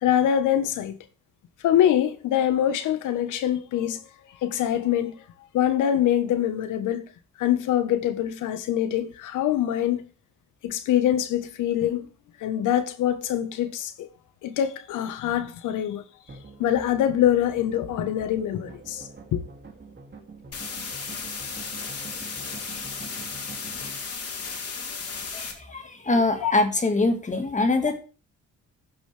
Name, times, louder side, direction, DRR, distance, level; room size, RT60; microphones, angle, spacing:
voice 1, 0.0-1.0 1.6-4.0 4.4-5.1 5.5-7.0 7.4-10.0 10.6-12.1 12.4-14.1 14.4-16.0 16.6-19.4 25.1-25.2 26.4-26.5, left 11 dB, 85° left, 1.3 m, -24 dB
sound 1, 16.3-24.0, right 3 dB, 35° right, 2.7 m, -45 dB
sound 2, 20.5-25.5, left 5 dB, 55° left, 3.2 m, -34 dB
voice 2, 25.3-28.0, left 2 dB, 25° left, 1.9 m, -24 dB
15.0 x 6.2 x 3.4 m
cardioid pair, 90°, 30 cm